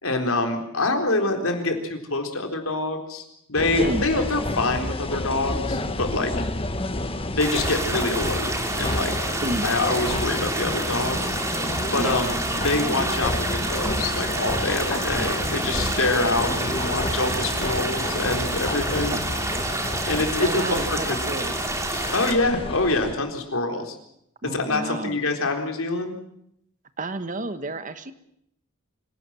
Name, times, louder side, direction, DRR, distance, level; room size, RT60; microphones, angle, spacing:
voice 1, 0.0-3.2 3.5-6.3 7.3-8.5 8.8-9.1 9.6-11.3 11.9-19.3 20.1-21.2 22.1-24.0 24.4-26.2, left 2 dB, 80° left, 4 dB, 4.1 m, -25 dB
sound 1, 3.5-23.1, left 1 dB, 25° left, 1.5 m, -30 dB
voice 2, 3.8-4.1 9.4-9.7 12.0-12.1 19.1-19.2 20.4-21.5 24.4-25.2 27.0-28.1, right 2 dB, 40° right, 11 dB, 1.4 m, -30 dB
sound 2, 7.4-22.3, right 2 dB, 15° right, 3.1 m, -29 dB
25.5 x 18.0 x 7.6 m, 0.74 s
head